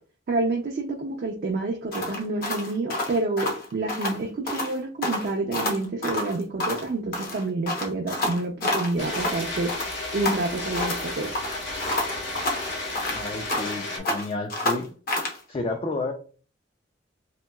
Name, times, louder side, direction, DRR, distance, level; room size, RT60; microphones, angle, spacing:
voice 1, 0.3-9.8 10.1-11.3, right 2 dB, 50° right, 1 dB, 0.4 m, -28 dB
sound 1, 1.9-4.2 4.5-4.7 5.0-6.9 7.1-9.4 9.7-11.1 11.3-13.8 14.0-15.4, left 1 dB, 55° left, 0.8 m, -29 dB
sound 2, 9.0-14.0, left 2 dB, 75° left, 1.1 m, -33 dB
sound 3, 9.0-14.2, right 3 dB, 70° right, 0.9 m, -43 dB
voice 2, 13.1-14.9 15.5-16.1, left 2 dB, 30° left, 3 dB, 0.3 m, -31 dB
2.9 x 2.8 x 2.2 m, 0.39 s
head